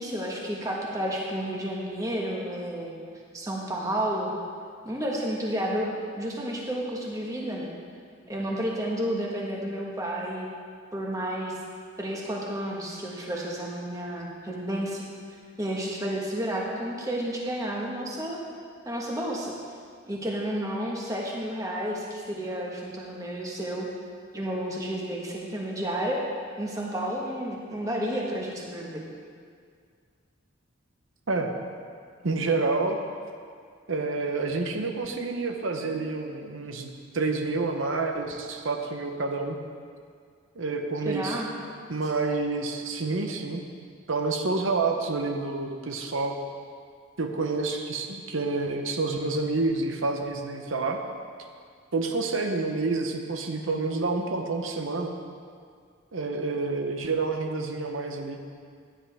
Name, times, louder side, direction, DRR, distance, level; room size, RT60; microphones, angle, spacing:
voice 1, 0.0-2.9 3.3-4.3 4.8-7.7 8.3-10.5 10.9-11.6 12.0-15.0 15.6-18.4 18.8-19.5 20.1-23.9 24.3-26.2 26.6-29.0 41.0-41.5, right 1 dB, 15° right, -2 dB, 1.4 m, -31 dB
voice 2, 32.2-33.0 33.9-39.6 40.6-41.4 41.9-43.6 44.1-46.3 47.2-51.0 51.9-55.1 56.1-58.4, right 3 dB, 80° right, 4 dB, 0.9 m, -28 dB
15.0 x 10.0 x 3.5 m, 2.1 s
head